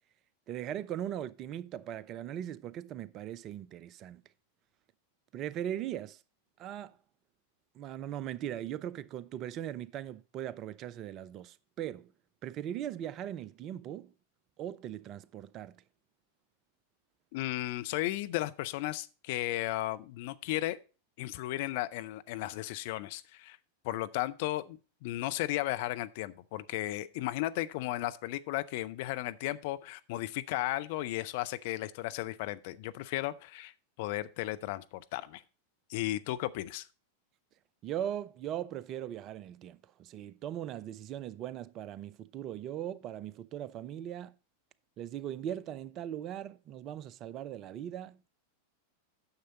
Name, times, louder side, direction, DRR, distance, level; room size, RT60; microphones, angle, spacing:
voice 1, 0.5-4.2 5.3-6.2 6.6-7.0 7.7-12.1 12.4-14.1 14.6-15.7 37.8-44.3 45.0-48.3, right 11 dB, 35° right, 0.4 m, -39 dB
voice 2, 17.3-20.8 21.2-23.6 23.8-33.7 34.0-35.4 35.9-36.9, left 16 dB, 50° left, 0.5 m, -35 dB
9.7 x 6.8 x 3.9 m
figure-of-eight pair, 90°, 0 cm